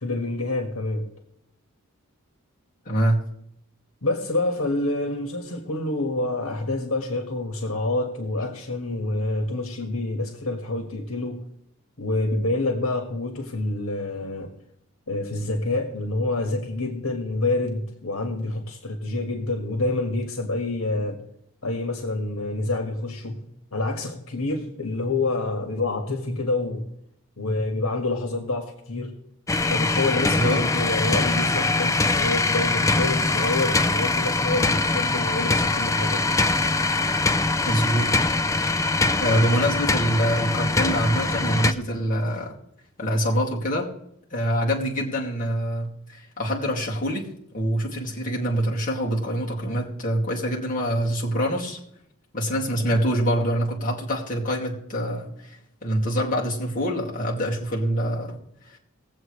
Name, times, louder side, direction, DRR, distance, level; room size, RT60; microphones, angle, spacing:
voice 1, 0.0-1.0 4.0-11.4 12.0-14.5 15.1-21.2 21.6-23.4 23.7-26.9 27.4-29.1 29.7-36.4, left 2 dB, 80° left, 4 dB, 1.8 m, -27 dB
voice 2, 2.9-3.2 30.3-30.6 37.6-38.1 39.2-42.5 43.0-43.9 44.3-47.3 47.5-51.8 52.3-58.4, equal, 40° left, -3 dB, 2.5 m, -25 dB
sound 1, 29.5-41.7, left 2 dB, 15° left, 0.4 m, -23 dB
20.0 x 7.9 x 3.3 m, 0.74 s
head